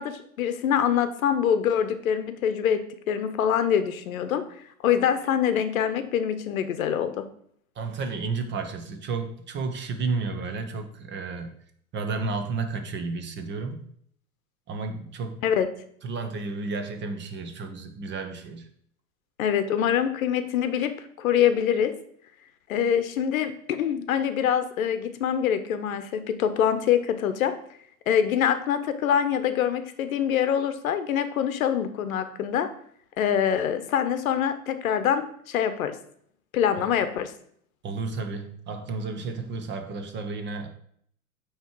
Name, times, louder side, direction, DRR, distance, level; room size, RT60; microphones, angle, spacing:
voice 1, 0.0-2.8 3.1-4.4 4.8-7.1 15.4-15.7 19.4-20.9 21.2-21.9 22.7-27.5 28.1-32.7 33.2-35.9 36.5-37.3, left 9 dB, 70° left, 10 dB, 0.9 m, -24 dB
voice 2, 7.8-11.5 11.9-13.8 14.7-15.4 16.0-18.7 37.8-40.7, right 4 dB, 25° right, 6 dB, 0.9 m, -32 dB
9.1 x 3.2 x 4.6 m, 0.65 s
hypercardioid pair, 105°, 43 cm